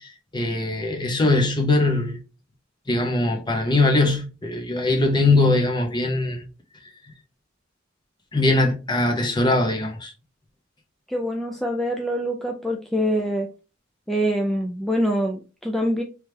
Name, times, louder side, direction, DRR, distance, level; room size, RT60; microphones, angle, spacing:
voice 1, 0.0-2.2 2.9-6.4 8.3-10.1, left 2 dB, 25° left, 0.8 m, -21 dB
voice 2, 11.1-13.5 14.1-16.0, equal, ahead, 0.3 m, -25 dB
3.3 x 3.1 x 3.3 m
head